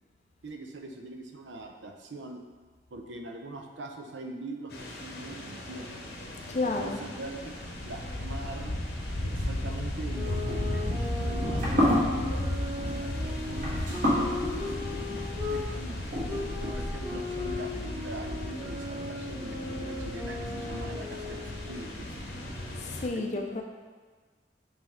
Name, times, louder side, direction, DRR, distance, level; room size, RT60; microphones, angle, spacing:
voice 1, 0.4-2.4 2.9-6.1 6.6-8.7 9.2-14.9 15.5-22.2 23.1-23.4, right 2 dB, 85° right, 4 dB, 0.6 m, -43 dB
sound 1, 4.7-23.1, left 1 dB, 60° left, 0.9 m, -35 dB
voice 2, 6.5-7.0 22.8-23.6, left 2 dB, 40° left, 3 dB, 0.4 m, -31 dB
sound 2, 10.1-15.6 16.3-21.8, left 3 dB, 15° right, 1.0 m, -38 dB
sound 3, 10.1-17.2, equal, 45° right, 1.4 m, -31 dB
7.5 x 3.4 x 3.6 m, 1.4 s
head